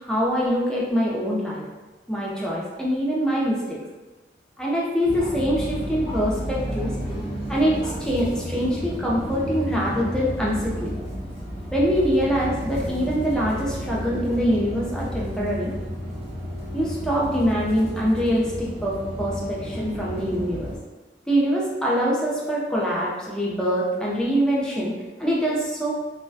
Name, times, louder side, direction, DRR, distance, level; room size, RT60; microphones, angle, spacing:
voice 1, 0.0-1.6 2.1-3.8 4.6-6.9 7.5-11.0 11.7-15.7 16.7-20.7 21.3-25.9, equal, 5° left, -5 dB, 0.4 m, -24 dB
sound 1, 5.0-20.8, equal, 35° right, 0.8 m, -32 dB
2.3 x 2.1 x 2.5 m, 1.2 s
head